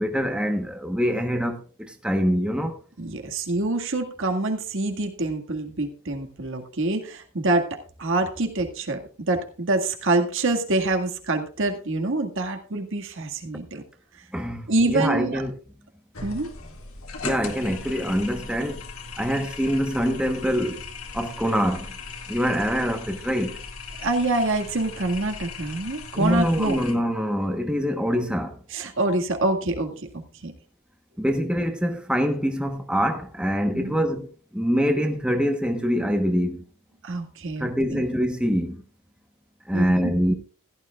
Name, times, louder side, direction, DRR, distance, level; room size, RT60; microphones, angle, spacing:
voice 1, 0.0-2.8 14.3-15.5 17.2-18.8 19.2-20.8 21.1-21.9 22.3-23.6 26.1-28.6 31.2-36.6 37.6-38.8 39.7-40.3, equal, 5° right, 1.1 m, -24 dB
voice 2, 3.0-13.8 14.7-15.4 16.2-16.5 24.0-26.8 28.7-30.5 33.7-34.0 37.0-38.0 39.7-40.1, right 2 dB, 60° right, 1.9 m, -26 dB
sound 1, 16.1-26.9, left 4 dB, 70° left, 2.1 m, -38 dB
16.0 x 12.0 x 2.4 m
head